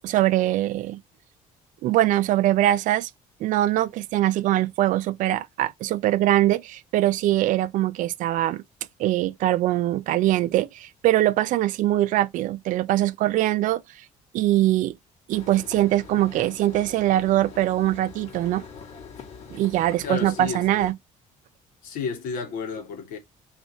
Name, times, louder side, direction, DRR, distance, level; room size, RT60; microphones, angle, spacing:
voice 1, 0.0-1.0 1.8-3.1 3.4-8.6 9.0-13.8 14.3-14.9 15.3-18.6 19.5-21.0, right 14 dB, 65° right, 0.4 m, -22 dB
sound 1, 15.3-20.9, left 6 dB, 55° left, 1.8 m, -43 dB
voice 2, 20.0-20.6 21.8-23.2, left 5 dB, 80° left, 1.7 m, -31 dB
3.2 x 3.1 x 3.9 m
cardioid pair, 130°, 14 cm